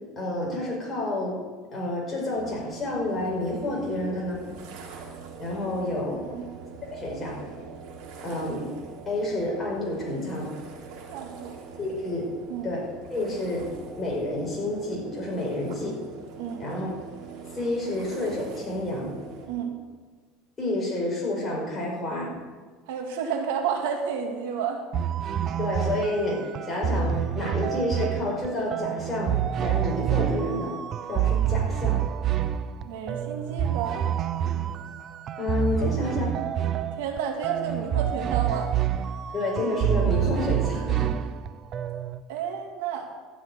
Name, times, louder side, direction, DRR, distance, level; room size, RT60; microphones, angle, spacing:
voice 1, 0.2-1.4 1.7-4.4 5.4-6.2 6.9-7.4 8.2-8.7 9.1-10.6 11.8-12.3 12.6-13.7 14.0-16.0 16.6-16.9 17.5-19.2 20.6-22.3 25.6-30.7 31.1-32.0 35.4-36.4 39.3-41.1, left 1 dB, 20° left, -3 dB, 5.5 m, -29 dB
sound 1, 2.4-19.5, right 5 dB, 65° right, 3.5 m, -43 dB
voice 2, 11.1-11.6 12.5-12.7 16.4-16.6 19.5-19.8 22.9-24.8 32.8-34.1 37.0-38.7 42.3-43.1, right 7 dB, 85° right, 3 dB, 2.3 m, -31 dB
sound 2, 24.9-42.2, right 10 dB, 35° right, 0.6 m, -27 dB
13.0 x 7.3 x 9.5 m, 1.5 s
cardioid pair, 155°, 0 cm